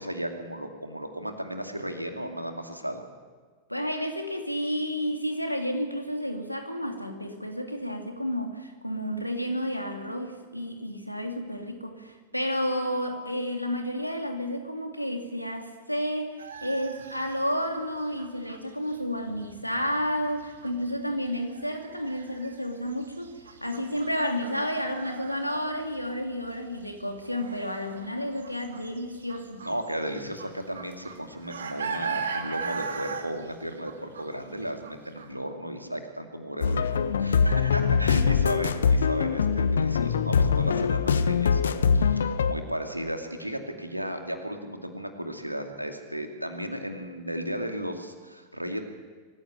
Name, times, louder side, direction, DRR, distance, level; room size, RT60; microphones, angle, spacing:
voice 1, 0.0-3.0 29.6-48.8, equal, 90° right, 5 dB, 2.5 m, -34 dB
voice 2, 3.7-23.3 23.6-29.7, equal, 90° left, 4 dB, 2.9 m, -31 dB
sound 1, 16.4-26.1 26.3-35.3, right 5 dB, 70° right, 2.2 m, -40 dB
sound 2, 36.6-42.5, left 6 dB, 65° left, 1.1 m, -23 dB
24.5 x 15.0 x 10.0 m, 1.5 s
figure-of-eight pair, 90°, 0 cm